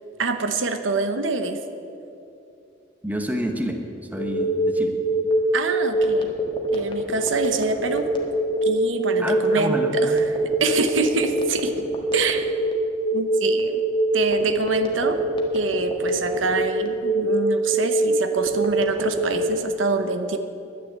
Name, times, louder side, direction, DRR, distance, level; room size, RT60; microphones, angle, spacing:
voice 1, 0.2-1.6 5.5-6.3 6.7-8.1 8.6-10.3 10.6-11.9 12.1-12.5 13.1-13.8 14.1-15.2 15.5-20.4, right 3 dB, 80° right, 8 dB, 0.9 m, -25 dB
voice 2, 3.0-3.8 4.1-4.9 9.2-9.9, equal, 10° right, 4 dB, 1.1 m, -28 dB
Telephone, 4.2-19.4, right 1 dB, 25° left, 1.6 m, -23 dB
11.0 x 10.0 x 8.6 m, 2.7 s
head